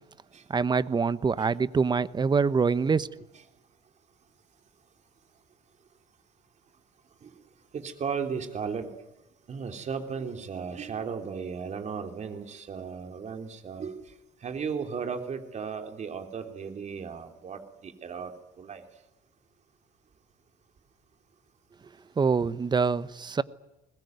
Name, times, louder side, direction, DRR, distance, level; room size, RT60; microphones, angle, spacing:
voice 1, 0.5-3.1 22.2-23.4, right 5 dB, 25° right, 0.9 m, -25 dB
voice 2, 7.7-8.9 9.5-14.0 14.4-18.3 18.6-18.8, right 6 dB, 45° right, 3.5 m, -35 dB
21.5 x 21.0 x 9.5 m
cardioid pair, 110°, 17 cm